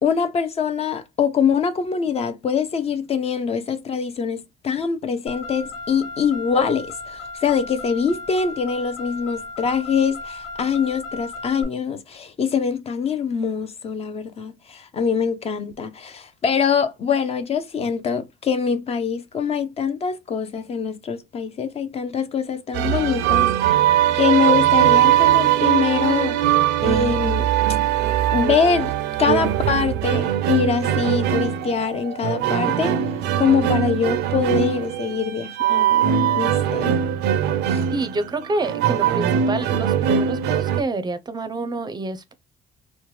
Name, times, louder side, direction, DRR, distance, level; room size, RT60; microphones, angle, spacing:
voice 1, 0.0-23.5 24.1-26.4 26.8-27.5 28.3-28.9 29.2-33.0 33.4-37.0 37.7-37.8, left 6 dB, 40° left, 0.5 m, -23 dB
Car, 5.3-11.6, left 3 dB, 90° left, 1.2 m, -36 dB
sound 1, 22.7-40.8, right 10 dB, 80° right, 0.5 m, -21 dB
voice 2, 37.9-42.3, right 2 dB, 25° right, 0.5 m, -28 dB
3.0 x 2.1 x 3.1 m
cardioid pair, 110°, 17 cm